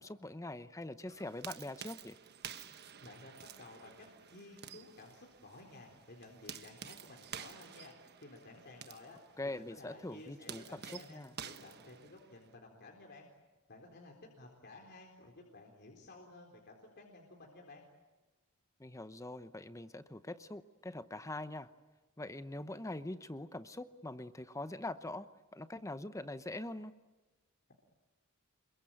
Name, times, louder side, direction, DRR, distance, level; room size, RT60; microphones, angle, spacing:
voice 1, 0.0-2.2 9.4-11.3 18.8-21.7 22.2-26.9, left 2 dB, 15° left, 12 dB, 0.8 m, -43 dB
sound 1, 1.1-12.5, right 8 dB, 45° right, 1.3 m, -51 dB
voice 2, 3.0-3.9 4.3-7.9 8.2-9.2 9.5-13.3 13.7-17.8, left 2 dB, 50° left, 1 dB, 4.0 m, -54 dB
28.0 x 23.0 x 9.1 m, 1.2 s
head